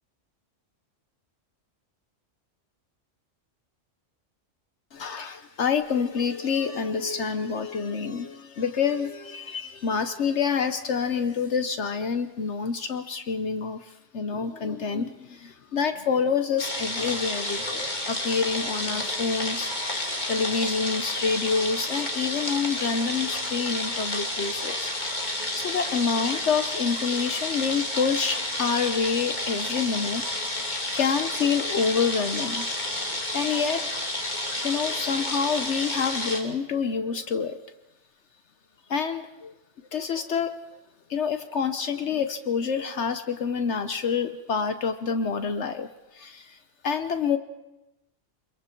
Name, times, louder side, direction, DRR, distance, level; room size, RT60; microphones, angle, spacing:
voice 1, 4.9-25.2 25.5-30.3 30.6-32.7 33.3-33.8 34.5-37.6 38.9-39.5 39.9-40.5 41.1-45.9 46.1-46.6 46.8-47.4, left 6 dB, 65° left, 9 dB, 1.1 m, -27 dB
sound 1, 16.6-36.4, left 1 dB, 35° left, 2.4 m, -30 dB
26.0 x 22.5 x 4.5 m, 1.0 s
omnidirectional pair, 1.3 m